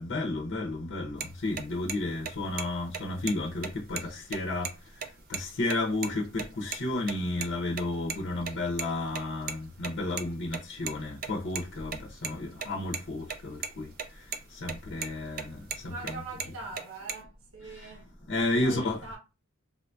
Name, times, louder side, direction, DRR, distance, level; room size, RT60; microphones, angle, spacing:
voice 1, 0.0-5.0 5.3-15.9 18.3-19.0, left 2 dB, 55° left, 0.6 m, -32 dB
sound 1, 1.2-1.3 1.6-1.7 1.9-2.0 2.3-2.6 2.9-3.0 3.3-3.4 3.6-4.7 5.0-5.1 5.3-5.4 5.7-6.1 6.4-6.8 7.1-8.2 8.4-10.9 11.2-13.0 13.3-13.4 13.6-14.1 14.3-14.7 15.0-16.1 16.4-17.1, right 6 dB, 45° right, 0.4 m, -35 dB
voice 2, 15.8-18.2 18.6-19.2, right 3 dB, 65° right, 1.0 m, -42 dB
3.8 x 2.6 x 2.2 m
head